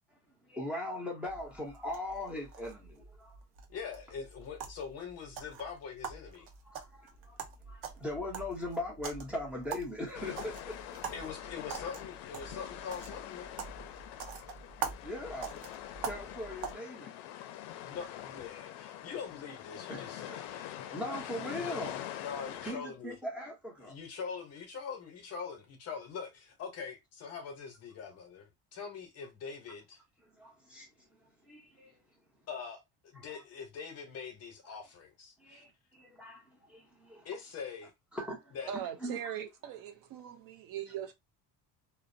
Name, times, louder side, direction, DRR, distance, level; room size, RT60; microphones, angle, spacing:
voice 1, 0.5-3.4 6.7-7.4 7.7-10.8 15.0-15.6 16.0-17.1 19.9-20.6 20.9-22.1 22.6-24.0 30.3-31.9 33.2-33.4 35.4-37.3 38.1-39.3, left 1 dB, 5° right, 0.6 m, -40 dB
sound 1, 1.2-16.7, right 6 dB, 85° right, 0.8 m, -44 dB
voice 2, 3.7-6.5 11.1-13.5 17.8-21.6 22.2-23.2 23.8-30.0 32.5-35.6 37.2-37.9 38.5-38.7, left 6 dB, 40° left, 0.7 m, -43 dB
sound 2, 10.1-22.7, left 12 dB, 75° left, 0.5 m, -44 dB
voice 3, 38.7-41.1, right 10 dB, 55° right, 0.5 m, -40 dB
2.5 x 2.0 x 2.5 m
cardioid pair, 160°, 41 cm